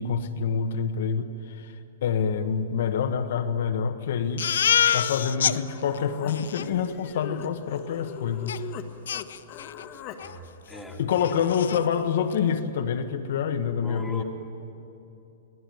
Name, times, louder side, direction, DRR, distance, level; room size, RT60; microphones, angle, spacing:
voice 1, 0.0-1.7 2.0-4.5 4.9-8.7 11.0-14.2, left 7 dB, 60° left, 6 dB, 1.3 m, -27 dB
Crying sobbing, 4.4-5.6 6.0-6.1 6.3-6.7 8.5-8.6 9.1-9.8 10.2-10.4 10.7-10.8 11.1-11.8, left 9 dB, 90° left, 0.6 m, -26 dB
Human voice, 5.5-8.9 9.1-10.2, left 10 dB, 30° left, 1.4 m, -41 dB
voice 2, 10.2-11.3 13.8-14.2, equal, ahead, -1 dB, 2.0 m, -39 dB
23.5 x 16.5 x 9.3 m, 2.8 s
hypercardioid pair, 170°, 0 cm